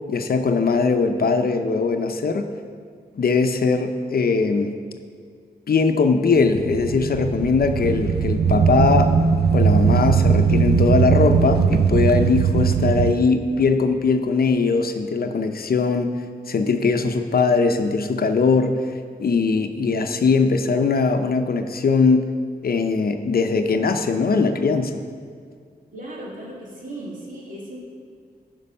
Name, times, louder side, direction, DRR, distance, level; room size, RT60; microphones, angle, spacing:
voice 1, 0.1-2.5 3.2-4.7 5.7-9.1 9.5-16.1 16.5-18.8 19.2-22.3 22.6-25.0, left 4 dB, 65° left, 7 dB, 0.7 m, -20 dB
sound 1, 6.4-13.1, right 6 dB, 80° right, 0.6 m, -19 dB
voice 2, 25.9-27.8, right 1 dB, 55° right, -4 dB, 2.7 m, -36 dB
14.0 x 5.4 x 5.5 m, 2.1 s
wide cardioid pair, 105°, 16 cm